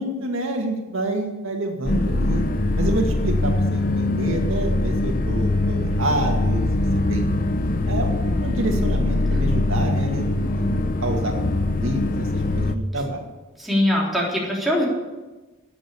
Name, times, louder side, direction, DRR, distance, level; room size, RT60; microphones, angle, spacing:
voice 1, 0.0-2.4 2.8-6.6 7.1-7.3 7.8-13.2, right 1 dB, 75° right, 2 dB, 2.2 m, -28 dB
sound 1, 1.9-12.8, left 2 dB, 40° left, 0.7 m, -22 dB
voice 2, 13.6-14.9, left 1 dB, ahead, -5 dB, 3.6 m, -21 dB
12.0 x 8.7 x 8.6 m, 1.1 s
head